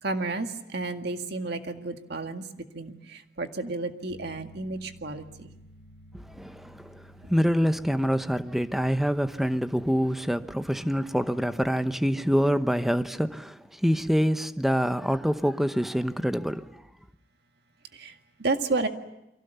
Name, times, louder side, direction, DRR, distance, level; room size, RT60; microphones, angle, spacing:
voice 1, 0.0-5.5 7.2-7.3 17.9-18.9, right 3 dB, 60° right, 2.0 m, -32 dB
sound 1, 4.1-11.9, equal, 80° left, 1.2 m, -54 dB
voice 2, 6.1-16.6, equal, ahead, 0.9 m, -26 dB
30.0 x 24.0 x 6.9 m
head